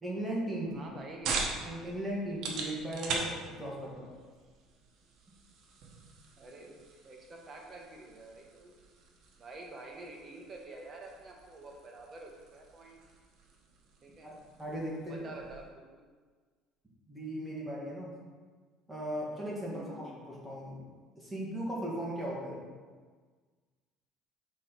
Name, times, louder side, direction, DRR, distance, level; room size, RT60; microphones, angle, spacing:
voice 1, 0.0-0.8 1.6-4.1 14.2-15.2 17.1-18.1 18.9-20.8 21.2-22.6, right 1 dB, 5° right, -5 dB, 1.7 m, -37 dB
sound 1, 0.6-15.7, right 4 dB, 60° right, 1.0 m, -43 dB
voice 2, 0.7-1.5 6.4-6.8 7.0-8.8 9.4-13.0 14.0-14.3 15.1-16.1 19.6-20.3, right 2 dB, 25° right, 0 dB, 1.1 m, -48 dB
6.1 x 4.2 x 4.5 m, 1.5 s
cardioid pair, 140°, 0 cm